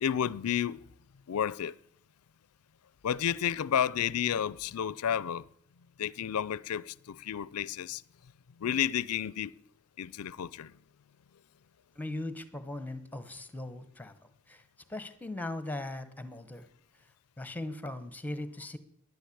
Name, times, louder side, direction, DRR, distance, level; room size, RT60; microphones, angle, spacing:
voice 1, 0.0-0.9 1.3-1.8 3.0-5.5 6.0-8.0 8.6-9.5 10.0-10.8, left 9 dB, 85° left, 0.4 m, -31 dB
voice 2, 12.0-14.1 14.5-14.6 14.9-16.7 17.4-18.8, left 2 dB, 10° left, 1.0 m, -39 dB
11.5 x 10.5 x 8.5 m
head